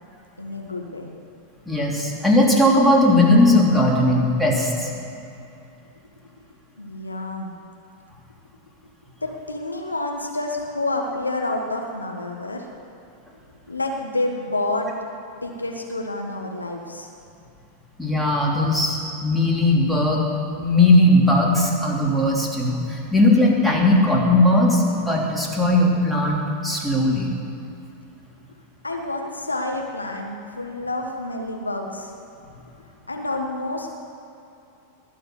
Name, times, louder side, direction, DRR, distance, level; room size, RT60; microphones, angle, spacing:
voice 1, 0.4-1.1 6.8-7.5 9.2-12.7 13.7-14.9 15.4-17.1 28.8-32.1 33.1-33.9, left 2 dB, 80° left, 2 dB, 1.5 m, -28 dB
voice 2, 1.7-4.9 18.0-20.3 20.6-27.3, left 1 dB, ahead, -3 dB, 3.2 m, -18 dB
20.5 x 7.2 x 9.7 m, 2.8 s
figure-of-eight pair, 90°, 0 cm